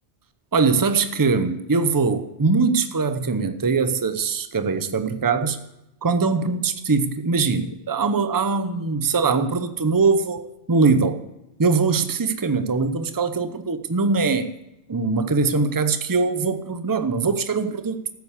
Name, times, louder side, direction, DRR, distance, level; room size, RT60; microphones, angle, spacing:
voice 1, 0.5-5.6 6.0-10.4 10.7-11.2 11.6-14.5 14.9-18.0, right 4 dB, 20° right, 10 dB, 0.7 m, -22 dB
13.5 x 8.2 x 8.2 m, 0.91 s
omnidirectional pair, 1.2 m